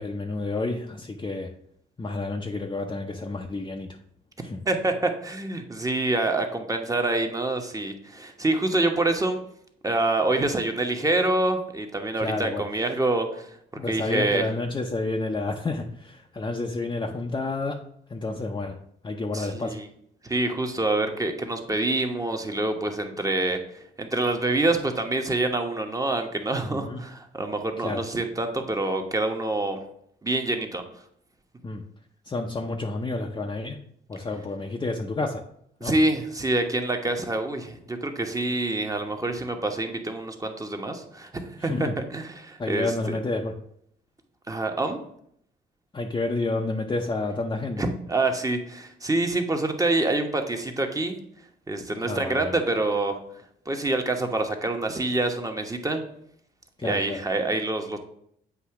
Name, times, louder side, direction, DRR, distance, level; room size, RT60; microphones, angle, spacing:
voice 1, 0.0-1.5 2.0-3.9 4.4-4.6 12.1-12.6 13.8-17.8 18.1-18.8 19.0-19.8 26.6-27.0 27.8-28.0 31.6-31.8 32.3-33.8 34.1-35.4 35.8-36.0 41.6-42.0 42.6-43.5 45.9-47.8 52.0-52.6 56.8-57.2, left 3 dB, 20° left, 1 dB, 0.7 m, -30 dB
voice 2, 4.7-9.4 9.8-13.5 13.9-14.4 19.3-19.9 20.2-29.8 30.2-30.8 35.8-43.2 44.5-45.0 47.8-51.2 51.7-53.2 53.7-56.0 56.8-58.0, right 2 dB, 15° right, 5 dB, 1.0 m, -26 dB
8.1 x 2.8 x 5.7 m, 0.70 s
cardioid pair, 90°, 20 cm